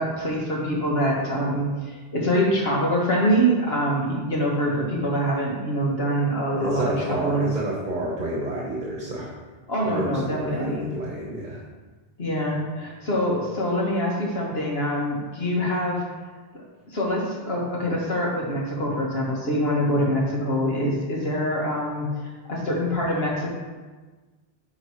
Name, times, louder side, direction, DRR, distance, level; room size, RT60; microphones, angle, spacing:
voice 1, 0.0-7.5 9.7-10.9 12.2-16.0 16.5-23.5, equal, 75° left, -3 dB, 1.9 m, -25 dB
voice 2, 6.6-9.3 9.9-11.6, right 1 dB, 50° right, -3 dB, 1.3 m, -29 dB
11.0 x 3.9 x 4.5 m, 1.3 s
omnidirectional pair, 1.0 m